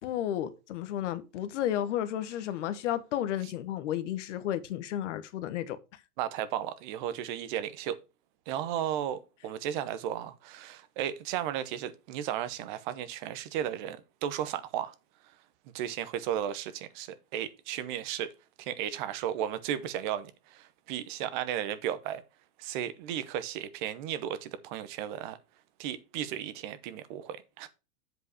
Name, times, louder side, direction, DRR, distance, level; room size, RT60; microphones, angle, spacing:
voice 1, 0.0-5.8, left 11 dB, 55° left, 1.2 m, -32 dB
voice 2, 6.2-8.0 8.5-14.9 15.7-18.3 18.6-22.2 22.6-25.4 25.8-27.7, right 10 dB, 35° right, 0.8 m, -34 dB
7.9 x 5.0 x 4.8 m
supercardioid pair, 165°, 44 cm